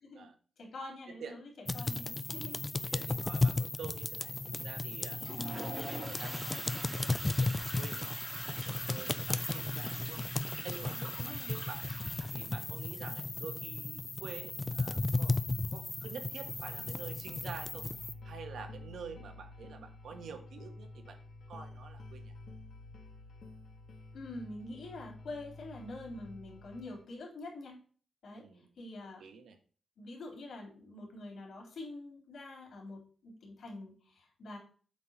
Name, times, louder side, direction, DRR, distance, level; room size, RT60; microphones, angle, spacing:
voice 1, 0.6-1.4 1.7-2.9 5.3-5.7 11.2-11.5 24.1-27.8 28.2-29.2 30.0-34.6, left 2 dB, 70° left, 0 dB, 3.9 m, -46 dB
voice 2, 1.1-1.4 1.8-2.1 2.9-5.2 5.6-10.2 10.6-11.9 12.3-17.9 18.2-21.2 21.5-22.3 28.3-28.7 29.2-29.6, right 5 dB, 85° right, 6 dB, 1.5 m, -48 dB
sound 1, 1.7-18.1, left 2 dB, 15° left, 0.4 m, -35 dB
Toilet flush, 5.0-12.7, right 1 dB, 15° right, 2.5 m, -45 dB
sound 2, 16.4-27.0, left 2 dB, 55° left, 1.2 m, -50 dB
8.2 x 4.5 x 5.4 m, 0.40 s
wide cardioid pair, 175°, 0 cm